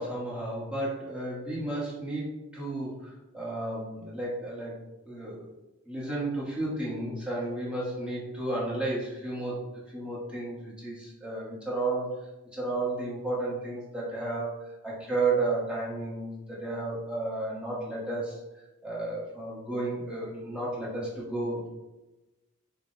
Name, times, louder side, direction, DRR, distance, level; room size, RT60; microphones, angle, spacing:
voice 1, 0.0-4.7 5.1-5.4 5.9-9.6 9.9-12.1 12.5-14.5 14.8-18.4 18.8-21.7, right 2 dB, 5° right, -7 dB, 1.2 m, -32 dB
5.0 x 2.1 x 3.8 m, 1.0 s
head